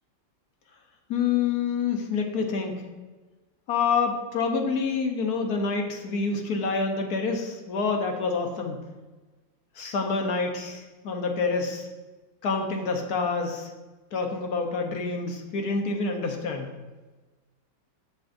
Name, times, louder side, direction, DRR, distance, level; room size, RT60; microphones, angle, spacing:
voice 1, 1.1-2.8 3.7-8.8 9.8-11.9 12.4-13.7 14.1-16.7, left 4 dB, 60° left, 3 dB, 1.3 m, -27 dB
15.5 x 5.2 x 2.6 m, 1.2 s
omnidirectional pair, 2.1 m